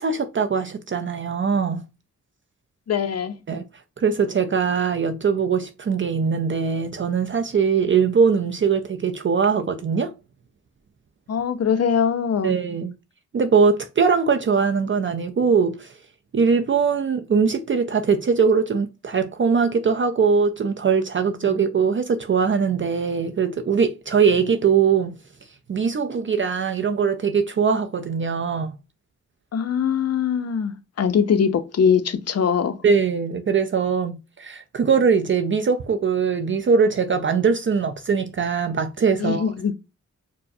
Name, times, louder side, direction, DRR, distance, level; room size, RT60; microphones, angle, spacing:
voice 1, 0.0-1.8 3.5-3.6 4.0-10.1 12.4-12.9 13.3-15.9 16.3-25.2 25.7-28.7 32.8-39.4, right 5 dB, 40° right, 0.4 m, -21 dB
voice 2, 2.9-3.4 11.3-12.6 21.4-21.6 29.5-32.8 39.2-39.7, left 7 dB, 50° left, 0.5 m, -22 dB
4.6 x 2.0 x 2.6 m
cardioid pair, 65°, 32 cm